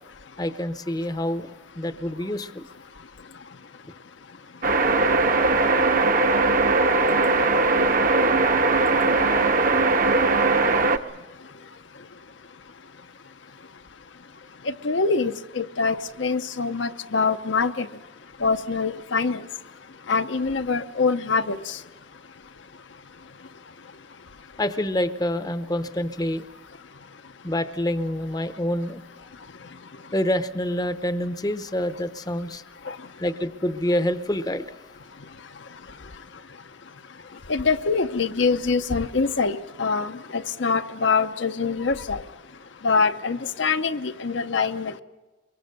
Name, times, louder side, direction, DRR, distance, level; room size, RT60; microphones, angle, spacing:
voice 1, 0.4-2.6 24.6-26.4 27.4-29.0 30.1-32.6 33.2-34.8, left 1 dB, 20° left, 11 dB, 0.7 m, -27 dB
sound 1, 4.6-11.0, right 3 dB, 45° right, 0.9 m, -20 dB
voice 2, 14.7-17.9 18.4-19.4 20.1-21.8 32.9-33.0 37.5-42.2 42.8-45.0, left 4 dB, 70° left, 9 dB, 0.8 m, -24 dB
23.5 x 22.5 x 6.6 m, 1.2 s
head